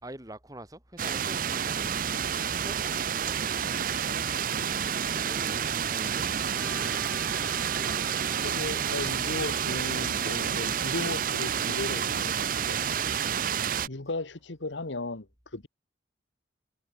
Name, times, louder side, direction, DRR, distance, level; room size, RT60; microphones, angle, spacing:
voice 1, 0.0-2.0 2.6-3.9 5.1-6.9, right 1 dB, 20° right, 4.0 m, -46 dB
sound 1, 1.0-13.9, right 8 dB, 45° right, 0.6 m, -29 dB
Trumpet, 6.5-10.7, equal, ahead, 5.9 m, -49 dB
voice 2, 8.4-12.3 12.6-12.8 13.9-15.7, left 2 dB, 80° left, 1.5 m, -36 dB
head